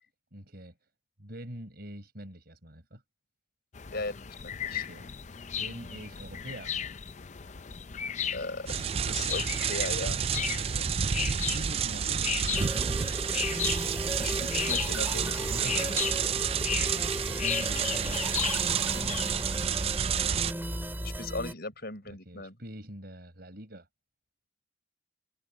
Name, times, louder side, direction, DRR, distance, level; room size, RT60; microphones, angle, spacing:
voice 1, 0.3-0.8 1.2-3.0 4.7-5.3 5.6-6.7 10.4-12.7 15.5-16.7 17.2-19.3 22.1-23.9, equal, 55° right, 5.0 m, -45 dB
sound 1, 3.7-19.3, left 8 dB, 40° left, 0.6 m, -36 dB
voice 2, 4.4-4.9 8.3-10.2 13.6-13.9 14.2-15.9 21.0-22.6, left 2 dB, 55° left, 6.8 m, -38 dB
sound 2, 8.7-20.5, right 7 dB, 30° right, 0.4 m, -30 dB
sound 3, 12.5-21.5, right 1 dB, 10° right, 3.7 m, -36 dB
head